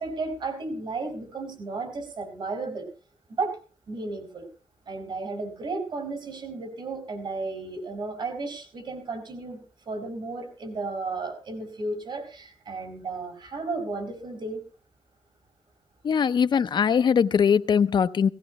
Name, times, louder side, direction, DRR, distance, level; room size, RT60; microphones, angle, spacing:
voice 1, 0.0-2.9 3.4-3.6 3.9-4.5 4.9-9.6 9.9-14.6, right 3 dB, 80° right, 4 dB, 4.7 m, -33 dB
voice 2, 16.0-18.3, left 7 dB, 70° left, 13 dB, 0.6 m, -21 dB
17.5 x 17.5 x 3.0 m, 0.35 s
wide cardioid pair, 125°, 8 cm